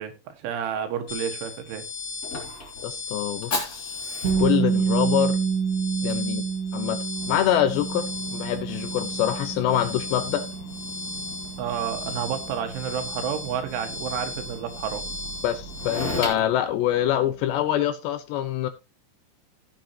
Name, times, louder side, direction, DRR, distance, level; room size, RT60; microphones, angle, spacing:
voice 1, 0.0-1.8 11.6-15.0, right 9 dB, 80° right, 4.0 m, -30 dB
sound 1, 1.1-16.3, left 3 dB, 45° left, 2.1 m, -37 dB
Fire, 1.4-17.6, left 2 dB, 20° left, 2.9 m, -38 dB
voice 2, 2.8-3.9 4.4-5.4 6.0-6.4 6.7-7.0 7.3-10.5 15.4-18.7, left 11 dB, 75° left, 2.9 m, -25 dB
sound 2, 4.2-16.1, right 6 dB, 50° right, 1.8 m, -29 dB
15.5 x 7.8 x 2.9 m
omnidirectional pair, 5.5 m